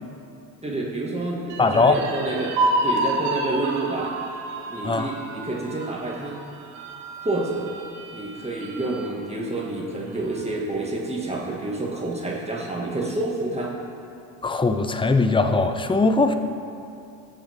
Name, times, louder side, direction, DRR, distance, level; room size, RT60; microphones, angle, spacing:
voice 1, 0.6-2.6 2.8-4.1 4.7-6.4 7.2-7.7 8.1-13.7, right 2 dB, 15° right, -4 dB, 2.1 m, -28 dB
sound 1, 1.5-9.1 9.6-9.7 10.1-10.8, right 2 dB, 60° right, 1.8 m, -30 dB
voice 2, 1.6-2.0 4.8-5.1 14.4-16.3, left 3 dB, 10° left, 8 dB, 0.7 m, -20 dB
19.0 x 7.1 x 3.7 m, 2.6 s
hypercardioid pair, 70°, 48 cm